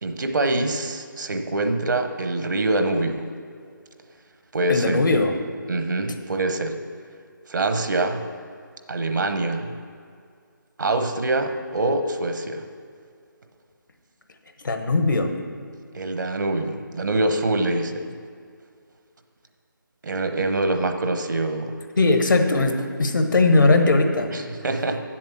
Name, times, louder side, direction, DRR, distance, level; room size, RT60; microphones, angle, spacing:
voice 1, 0.0-3.3 4.5-5.0 5.7-6.8 7.5-8.2 8.9-9.7 10.8-12.6 15.9-18.0 20.0-21.8 24.3-25.0, right 2 dB, 65° right, 7 dB, 1.0 m, -24 dB
voice 2, 4.7-5.3 14.6-15.3 22.0-24.3, left 3 dB, 65° left, 6 dB, 1.2 m, -19 dB
8.2 x 7.4 x 7.1 m, 2.2 s
figure-of-eight pair, 155°, 11 cm